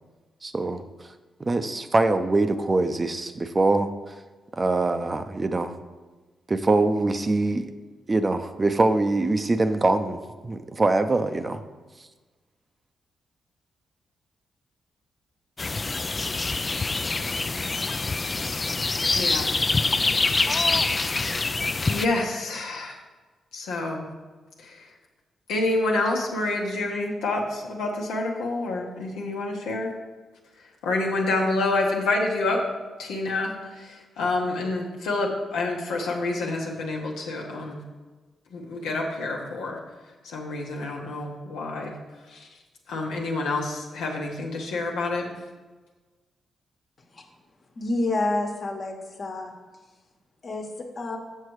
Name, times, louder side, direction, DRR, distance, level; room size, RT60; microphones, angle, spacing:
voice 1, 0.4-0.8 1.4-4.1 4.5-5.8 6.5-7.7 8.1-11.6, right 2 dB, 35° right, 9 dB, 0.6 m, -23 dB
sound 1, 15.6-22.1, left 3 dB, 35° left, 0.4 m, -25 dB
voice 2, 19.1-19.5 21.9-22.9 23.5-24.1 24.6-24.9 25.5-29.9 30.8-32.6 33.0-37.8 38.5-39.8 40.2-41.9 42.3-42.5 42.9-45.3, left 2 dB, 85° left, -1 dB, 1.1 m, -28 dB
voice 3, 47.8-49.5 50.4-51.2, left 2 dB, 55° left, 2 dB, 1.4 m, -28 dB
6.6 x 6.3 x 4.7 m, 1.3 s
supercardioid pair, 45°, 0 cm